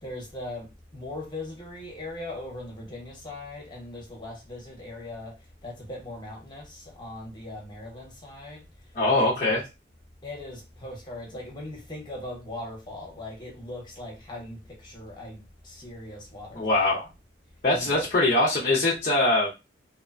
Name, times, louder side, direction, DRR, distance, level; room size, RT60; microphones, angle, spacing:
voice 1, 0.0-5.3 5.6-8.6 9.1-9.6 10.2-16.7 17.7-18.1, left 1 dB, 25° left, 0.9 m, -39 dB
voice 2, 8.9-9.6 16.5-17.1 17.6-19.5, left 2 dB, 40° left, 0.6 m, -22 dB
2.8 x 2.2 x 2.5 m
head